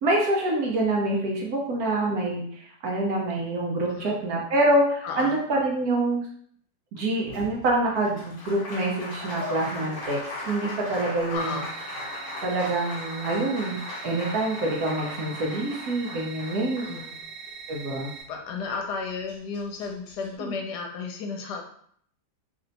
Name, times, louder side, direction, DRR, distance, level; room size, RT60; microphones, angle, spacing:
voice 1, 0.0-6.3 6.9-11.6 12.4-16.9 17.7-18.1 20.4-20.5, right 2 dB, 65° right, -2 dB, 1.2 m, -26 dB
voice 2, 3.9-4.2 5.0-5.4 11.3-11.7 16.7-17.2 18.3-21.6, left 4 dB, 75° left, 3 dB, 1.1 m, -33 dB
Applause, 7.2-17.5 18.9-19.0 19.3-20.3, left 2 dB, 50° left, 1.2 m, -38 dB
sound 1, 11.4-18.2, right 6 dB, 85° right, 1.6 m, -41 dB
3.3 x 2.7 x 3.9 m, 0.63 s
omnidirectional pair, 1.9 m